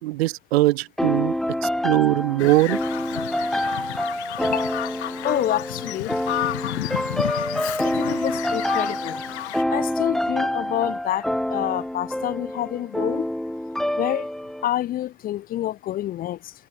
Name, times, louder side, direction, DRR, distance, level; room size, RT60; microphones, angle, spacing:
voice 1, 0.0-1.3 1.6-2.8, right 18 dB, 60° right, 2.7 m, -21 dB
sound 1, 1.0-14.7, left 1 dB, ahead, 2.5 m, -27 dB
Bird vocalization bird call bird song, 2.4-9.6, left 16 dB, 70° left, 3.5 m, -31 dB
voice 2, 5.2-6.5 7.8-9.2 9.7-11.2 11.5-13.3 14.0-14.3 14.6-16.5, left 13 dB, 25° left, 3.7 m, -28 dB
supercardioid pair, 175°, 34 cm